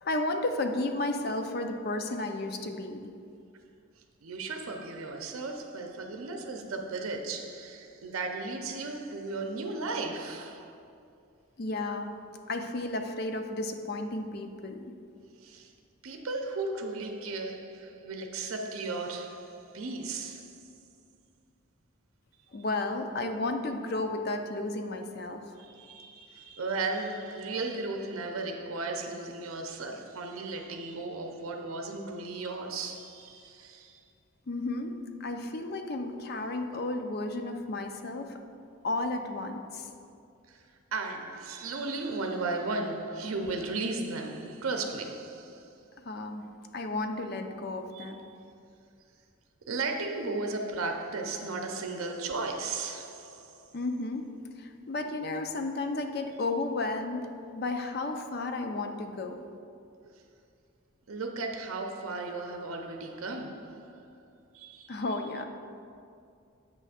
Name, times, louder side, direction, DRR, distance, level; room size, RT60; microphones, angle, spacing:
voice 1, 0.0-3.1 11.6-12.1 12.5-14.9 22.5-25.4 34.5-38.4 38.8-39.9 46.0-46.4 46.7-48.2 53.7-54.3 54.6-57.3 57.5-59.4 64.9-65.5, left 2 dB, 50° left, 0.5 m, -33 dB
voice 2, 4.0-10.8 15.4-15.7 16.0-20.9 25.5-34.0 40.5-45.8 47.9-48.1 49.7-53.7 61.1-64.2 64.5-64.9, right 3 dB, 85° right, 0.6 m, -35 dB
7.6 x 3.3 x 6.3 m
head